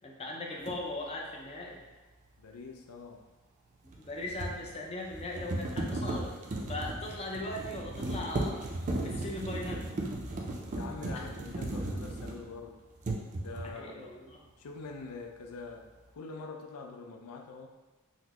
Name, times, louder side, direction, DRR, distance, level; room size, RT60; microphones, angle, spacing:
voice 1, 0.0-1.8 3.8-6.3 6.7-8.6 9.0-9.9 11.1-11.3 13.6-14.4, left 1 dB, 30° left, -2 dB, 0.5 m, -39 dB
sound 1, 0.7-0.8 3.9-12.6 13.0-13.8, right 2 dB, 35° right, 0.4 m, -36 dB
voice 2, 2.4-3.3 10.7-12.8 13.4-14.1 14.6-17.7, left 4 dB, 80° left, 3 dB, 0.4 m, -44 dB
3.9 x 2.0 x 2.9 m, 1.3 s
head